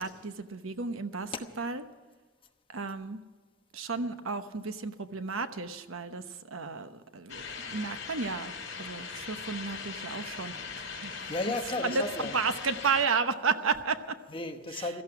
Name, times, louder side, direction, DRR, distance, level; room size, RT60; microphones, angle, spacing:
voice 1, 0.0-1.8 2.7-3.2 3.7-6.2 6.5-8.5 8.8-11.1 11.8-12.0 12.3-14.2 14.8-14.9, right 4 dB, 80° right, 1.0 m, -32 dB
sound 1, 7.3-13.1, left 5 dB, 60° left, 5.4 m, -40 dB
voice 2, 11.1-12.4 14.3-15.0, left 2 dB, 25° left, 1.1 m, -34 dB
16.5 x 14.0 x 5.9 m
head